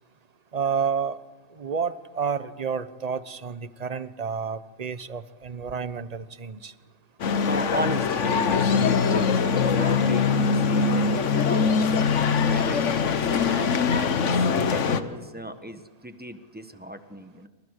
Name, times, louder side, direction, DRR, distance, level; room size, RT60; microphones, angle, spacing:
voice 1, 0.5-1.2 1.6-6.7, right 6 dB, 35° right, 14 dB, 0.9 m, -30 dB
sound 1, 7.2-15.0, left 5 dB, 65° left, 1.4 m, -22 dB
voice 2, 7.4-11.6 11.9-17.5, right 1 dB, 5° right, 9 dB, 1.3 m, -36 dB
29.0 x 25.5 x 6.6 m, 1.4 s
omnidirectional pair, 1.4 m